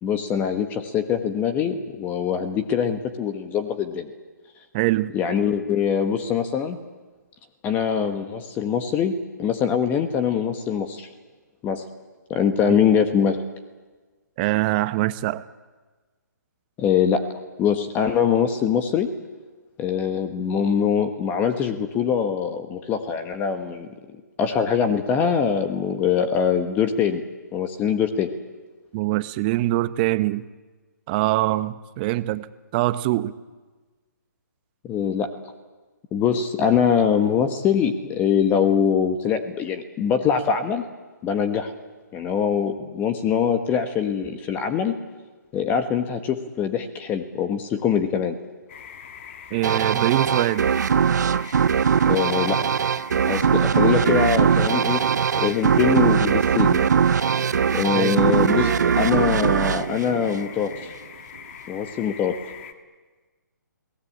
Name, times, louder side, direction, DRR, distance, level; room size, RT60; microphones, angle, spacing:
voice 1, 0.0-4.1 5.1-6.8 7.6-9.1 9.4-11.1 11.6-11.8 12.3-13.4 16.8-17.2 17.6-19.1 19.8-23.9 24.4-27.2 27.5-28.3 34.8-35.3 36.1-40.8 41.2-41.7 42.1-45.0 45.5-48.4 52.1-52.6 53.2-55.0 55.4-56.9 57.7-60.9 61.7-62.4, left 7 dB, 15° left, 1.3 m, -23 dB
voice 2, 4.7-5.1 14.4-15.5 28.9-30.4 31.1-33.3 49.5-50.7 57.9-58.2, right 17 dB, 30° right, 0.9 m, -23 dB
sound 1, 48.7-62.7, left 8 dB, 40° left, 2.2 m, -42 dB
sound 2, 49.6-60.9, right 7 dB, 65° right, 0.7 m, -21 dB
30.0 x 18.5 x 8.7 m
hypercardioid pair, 145°, 10 cm